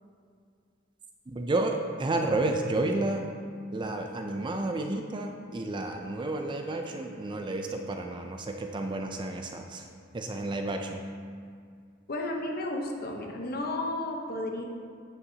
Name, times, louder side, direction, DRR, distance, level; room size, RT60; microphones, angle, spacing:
voice 1, 1.3-3.3 3.7-9.9 10.1-11.0, right 2 dB, 25° right, 4 dB, 0.4 m, -31 dB
voice 2, 12.1-14.6, left 1 dB, 50° left, 1 dB, 0.9 m, -33 dB
9.2 x 6.9 x 2.8 m, 2.1 s
head